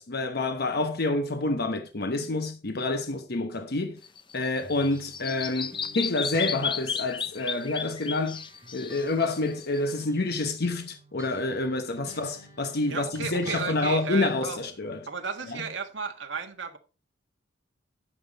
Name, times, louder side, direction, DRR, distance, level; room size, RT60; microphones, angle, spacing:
voice 1, 0.0-4.0 4.3-8.4 8.7-15.1 15.5-15.6, left 2 dB, 60° left, 1.0 m, -28 dB
Bird vocalization bird call bird song, 4.0-9.9, left 6 dB, 25° left, 0.7 m, -34 dB
sound 1, 4.6-8.1 8.3-14.7, right 1 dB, 20° right, 3.6 m, -50 dB
voice 2, 12.9-14.6 15.1-16.8, right 5 dB, 75° right, 1.7 m, -34 dB
11.0 x 7.7 x 4.1 m
head